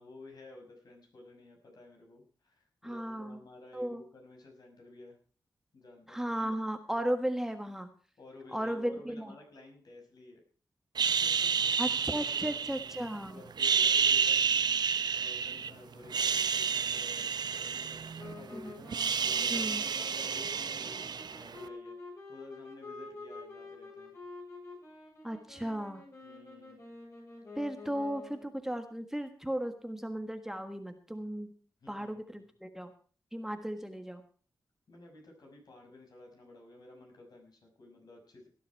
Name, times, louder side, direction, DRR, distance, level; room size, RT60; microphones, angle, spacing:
voice 1, 0.0-5.2 5.7-6.3 7.0-7.1 8.2-10.4 11.0-12.6 13.2-18.9 19.2-21.9 22.3-24.2 26.2-26.8 31.8-32.4 34.9-38.5, left 2 dB, 60° left, 2 dB, 6.1 m, -53 dB
voice 2, 2.8-3.4 3.7-4.0 6.1-7.9 8.5-9.3 11.8-13.4 18.5-18.8 19.5-19.8 25.2-26.0 27.5-31.5 31.9-32.9 33.3-34.2, equal, 5° right, 6 dB, 1.5 m, -35 dB
sound 1, 11.0-13.1 13.5-15.7 16.0-18.4 18.7-21.6, right 6 dB, 65° right, 0.9 m, -30 dB
sound 2, 18.2-28.6, left 3 dB, 40° left, 7.1 m, -48 dB
18.0 x 10.5 x 4.7 m, 0.42 s
cardioid pair, 80°, 8 cm